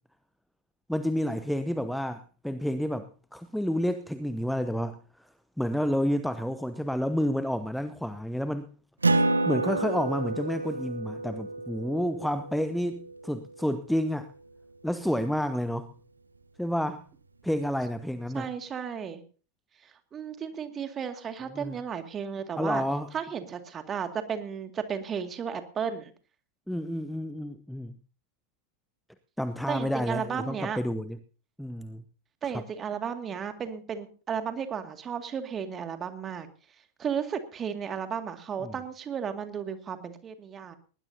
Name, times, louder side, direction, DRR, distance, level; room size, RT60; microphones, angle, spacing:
voice 1, 0.9-5.0 5.6-8.7 9.5-14.3 14.8-15.9 16.6-17.0 17.4-18.5 21.5-21.8 22.6-23.1 26.7-27.9 29.4-31.2 31.6-32.0 32.5-32.6 38.6-38.8, equal, ahead, 0.8 m, -30 dB
Acoustic guitar, 9.0-14.0, right 2 dB, 80° right, 1.0 m, -30 dB
voice 2, 18.3-19.2 19.8-22.8 23.1-26.1 29.7-30.8 32.4-36.5 37.0-40.8, right 7 dB, 25° right, 2.2 m, -34 dB
20.0 x 19.5 x 2.8 m
figure-of-eight pair, 90°, 0 cm